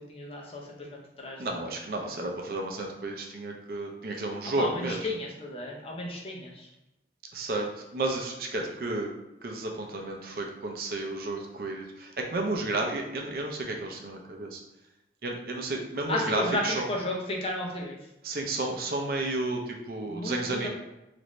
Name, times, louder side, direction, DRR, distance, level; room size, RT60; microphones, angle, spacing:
voice 1, 0.0-1.7 4.4-6.7 8.7-8.8 16.1-18.1 20.1-20.7, left 1 dB, 30° left, -1 dB, 0.6 m, -34 dB
voice 2, 1.4-5.0 7.3-9.1 9.4-14.6 15.2-16.8 18.2-20.7, right 2 dB, 55° right, 2 dB, 0.5 m, -32 dB
3.1 x 2.5 x 3.0 m, 0.95 s
head